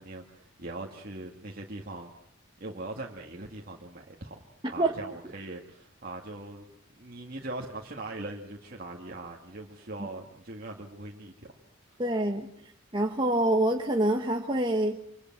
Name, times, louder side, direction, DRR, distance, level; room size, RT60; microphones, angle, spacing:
voice 1, 0.0-2.1 2.6-6.7 7.0-11.3 11.9-12.0, right 2 dB, 45° right, 0 dB, 2.1 m, -41 dB
voice 2, 12.0-12.5 12.9-15.0, right 1 dB, 20° right, 2 dB, 1.3 m, -26 dB
27.0 x 25.5 x 6.0 m, 0.64 s
head